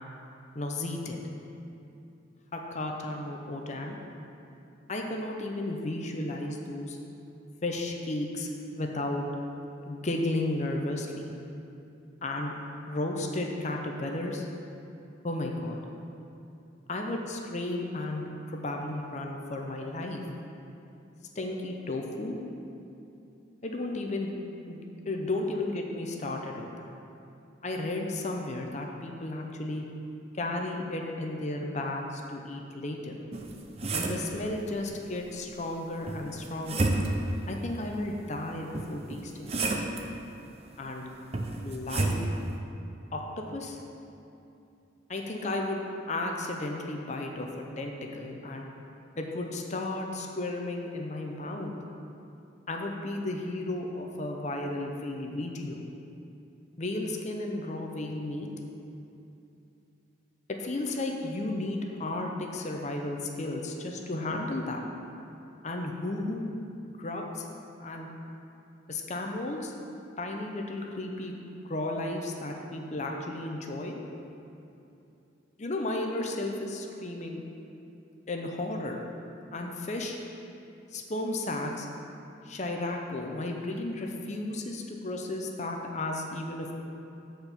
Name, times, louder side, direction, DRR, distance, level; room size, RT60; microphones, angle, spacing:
voice 1, 0.5-1.2 2.5-4.0 4.9-7.0 7.6-9.3 9.9-11.3 12.2-12.5 12.8-14.5 15.2-15.8 16.9-20.2 21.4-22.4 23.6-24.3 24.7-26.9 27.6-29.8 30.3-33.1 33.9-36.9 37.5-39.5 40.8-41.0 41.6-42.2 43.1-43.8 45.1-47.5 47.8-48.7 49.2-51.7 52.7-55.8 56.8-58.5 60.5-64.8 65.6-66.5 67.0-67.5 67.8-68.1 68.9-69.7 70.2-71.3 71.6-74.0 75.6-77.4 78.3-79.0 79.5-80.2 80.9-81.9 82.4-86.7, left 2 dB, 35° left, 2 dB, 0.6 m, -33 dB
sound 1, 33.3-34.3 36.1-37.3 38.7-40.0 41.3-42.2, right 2 dB, 30° right, 0.5 m, -30 dB
7.6 x 4.5 x 6.7 m, 2.7 s
head